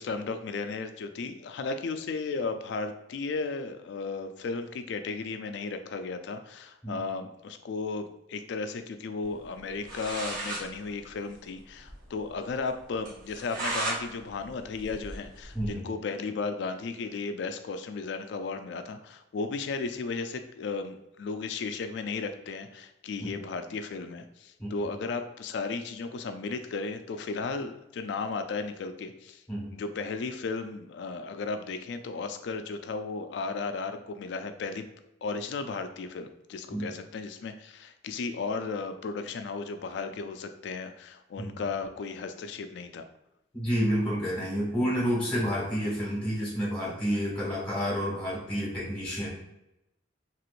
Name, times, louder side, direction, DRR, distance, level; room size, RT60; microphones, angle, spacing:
voice 1, 0.0-29.4 29.7-34.9 35.2-43.1, left 4 dB, 65° left, 9 dB, 0.3 m, -35 dB
sound 1, 9.6-9.7 9.8-10.7 11.0-11.1 11.3-11.4 11.8-11.9 12.3-12.4 13.1-14.0 14.4-15.7, right 2 dB, 45° right, 1.0 m, -34 dB
voice 2, 15.5-15.9 24.6-24.7 29.5-29.7 36.7-36.9 41.4-41.6 43.5-49.3, equal, 5° left, -6 dB, 1.4 m, -29 dB
3.0 x 3.0 x 2.4 m, 0.89 s
head